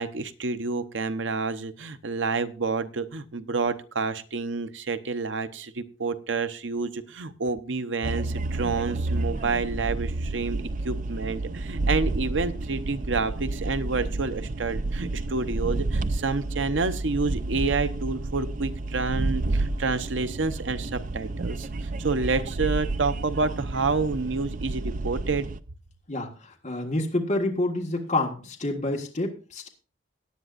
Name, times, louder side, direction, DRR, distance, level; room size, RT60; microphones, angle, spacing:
voice 1, 0.0-25.5, right 4 dB, 85° right, 11 dB, 0.8 m, -29 dB
sound 1, 8.0-25.6, right 2 dB, 45° right, 0.4 m, -30 dB
voice 2, 26.1-29.7, left 2 dB, 40° left, 0 dB, 1.7 m, -28 dB
17.5 x 10.0 x 2.5 m, 0.37 s
head